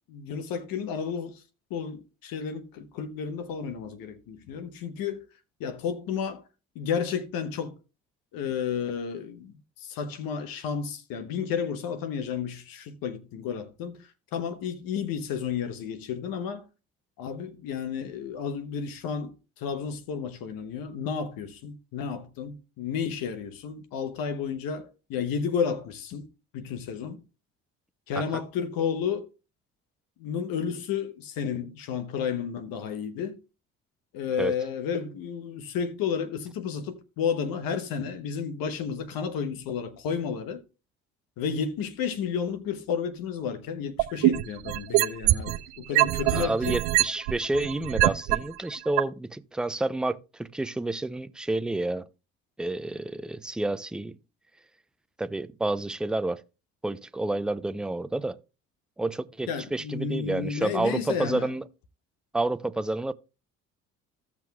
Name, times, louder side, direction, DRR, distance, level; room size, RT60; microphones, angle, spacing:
voice 1, 0.1-1.4 1.7-5.2 5.6-6.4 6.7-7.7 8.3-16.7 17.2-26.3 26.5-27.2 28.1-29.3 30.2-33.4 34.1-40.6 41.4-46.8 59.5-61.5, left 7 dB, 65° left, 1.0 m, -32 dB
sound 1, 44.0-45.6 46.0-48.4 49.0-49.1, right 18 dB, 75° right, 0.6 m, -22 dB
voice 2, 46.0-52.1 52.6-54.2 55.2-56.4 56.8-58.4 59.0-61.6 62.3-63.1, right 2 dB, ahead, 0.4 m, -29 dB
16.0 x 5.9 x 2.3 m
hypercardioid pair, 60°, 37 cm